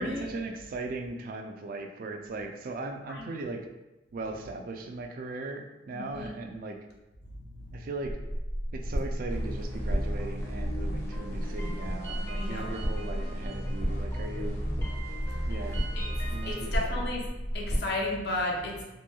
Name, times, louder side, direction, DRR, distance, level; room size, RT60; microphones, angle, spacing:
voice 1, 0.0-3.7 4.1-6.8 7.7-8.2 8.7-14.6 15.5-17.1, right 3 dB, 50° right, 4 dB, 0.3 m, -38 dB
voice 2, 5.9-6.3 7.2-7.9 8.6-8.7 12.3-12.7 15.1-18.8, left 2 dB, 60° left, -2 dB, 0.6 m, -35 dB
sound 1, 8.0-17.8, equal, 80° left, 1.1 m, -33 dB
sound 2, 9.3-16.7, equal, 15° left, 0.5 m, -38 dB
2.9 x 2.6 x 2.2 m, 1.0 s
head